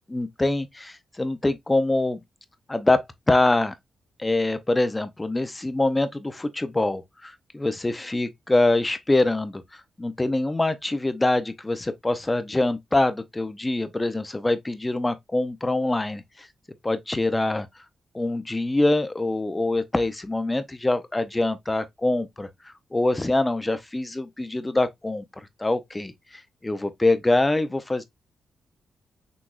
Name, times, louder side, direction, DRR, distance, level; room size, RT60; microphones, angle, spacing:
voice 1, 0.1-2.2 2.7-3.0 3.3-3.7 4.2-16.5 16.8-17.7 18.1-25.2 25.6-28.0, left 2 dB, 15° left, 0.6 m, -24 dB
6.1 x 3.4 x 2.4 m
wide cardioid pair, 155°, 0 cm